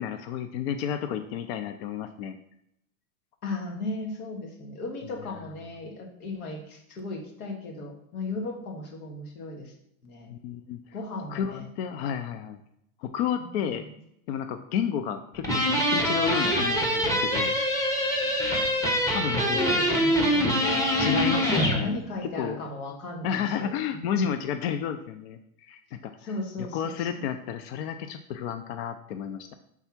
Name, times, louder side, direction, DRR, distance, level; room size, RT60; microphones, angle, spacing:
voice 1, 0.0-2.4 5.3-5.4 10.3-10.8 11.3-12.6 13.0-13.8 14.3-17.6 19.1-19.8 20.9-22.0 22.4-22.6 23.2-26.3 26.7-29.5, left 8 dB, 45° left, 8 dB, 0.5 m, -31 dB
voice 2, 3.4-9.7 10.0-10.3 10.9-11.7 13.4-13.9 15.8-15.9 19.5-24.3 26.2-27.2, left 2 dB, 80° left, 2 dB, 1.8 m, -36 dB
sound 1, 15.4-21.8, equal, 10° left, 0.9 m, -24 dB
5.5 x 3.5 x 5.7 m, 0.79 s
supercardioid pair, 140°, 43 cm